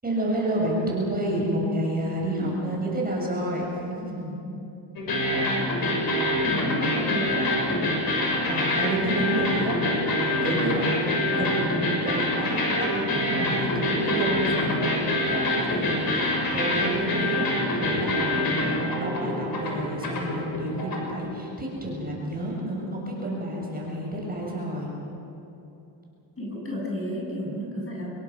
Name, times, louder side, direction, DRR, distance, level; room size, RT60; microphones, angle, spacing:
voice 1, 0.0-4.4 8.5-9.8 10.2-24.9, right 1 dB, 15° right, -3 dB, 7.3 m, -30 dB
sound 1, 5.0-21.1, left 1 dB, 45° left, 7.0 m, -25 dB
voice 2, 6.4-7.8 26.4-28.1, left 1 dB, 25° left, -2 dB, 7.7 m, -32 dB
26.0 x 22.5 x 6.4 m, 2.9 s
cardioid pair, 110°, 50 cm